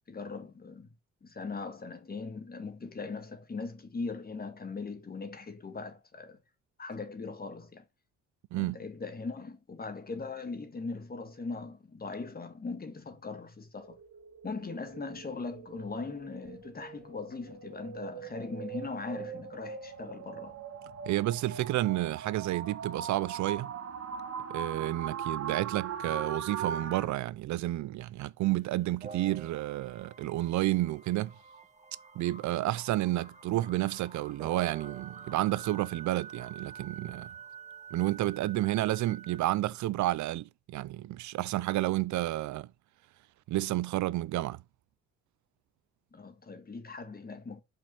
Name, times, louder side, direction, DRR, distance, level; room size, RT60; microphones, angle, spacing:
voice 1, 0.1-0.9 1.2-6.4 6.8-7.8 8.6-14.0 14.4-20.6 46.1-47.6, left 4 dB, 30° left, 1.8 m, -40 dB
sound 1, 13.8-27.1, right 8 dB, 55° right, 1.3 m, -40 dB
voice 2, 21.1-23.7 24.5-31.3 32.2-37.3 37.9-42.7 43.5-44.6, right 16 dB, 70° right, 0.5 m, -30 dB
sound 2, 28.4-39.4, right 6 dB, 25° right, 1.4 m, -48 dB
5.6 x 5.2 x 5.6 m
cardioid pair, 90°, 30 cm